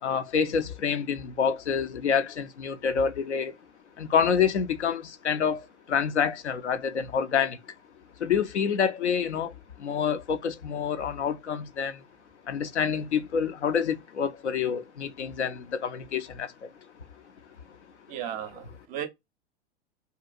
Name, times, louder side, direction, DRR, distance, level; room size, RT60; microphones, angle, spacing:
voice 1, 0.0-3.5 4.0-7.6 8.2-12.0 12.5-16.7 18.6-18.7, left 7 dB, 80° left, 0.5 m, -27 dB
voice 2, 18.1-19.1, right 10 dB, 25° right, 0.5 m, -35 dB
2.8 x 2.2 x 2.4 m
figure-of-eight pair, 90°, 34 cm